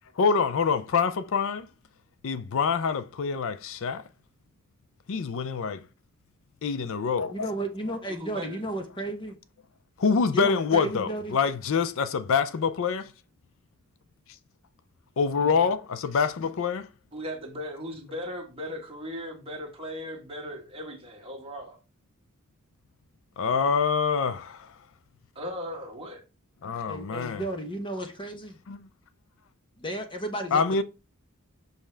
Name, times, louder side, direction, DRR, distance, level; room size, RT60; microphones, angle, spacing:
voice 1, 0.2-1.7 2.2-4.0 5.1-5.8 6.6-7.5 10.0-13.1 15.2-16.9 23.4-24.7 26.6-27.4 28.7-28.9 30.5-30.8, left 5 dB, 65° left, 0.4 m, -26 dB
voice 2, 7.3-9.3 10.3-11.4 26.8-28.6 29.8-30.6, right 1 dB, 25° left, 0.9 m, -33 dB
voice 3, 8.1-8.6 17.1-21.8 25.3-26.2, equal, 25° right, 1.6 m, -37 dB
6.1 x 5.4 x 3.3 m
head